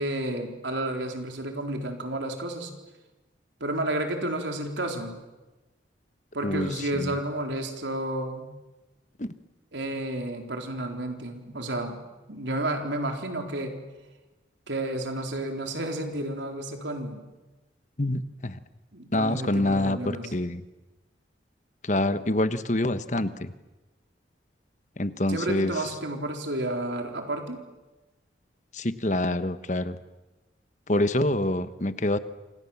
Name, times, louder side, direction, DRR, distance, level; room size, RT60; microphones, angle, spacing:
voice 1, 0.0-2.7 3.6-5.2 6.3-8.5 9.7-12.0 12.3-13.8 14.7-17.2 18.9-20.3 25.3-27.6, right 1 dB, 75° right, 4 dB, 4.2 m, -31 dB
voice 2, 6.4-7.1 9.2-9.3 18.0-18.6 19.1-20.6 21.8-23.5 25.0-25.9 28.7-30.0 30.9-32.2, left 1 dB, 40° left, 12 dB, 1.3 m, -26 dB
28.0 x 27.5 x 7.4 m, 1.1 s
head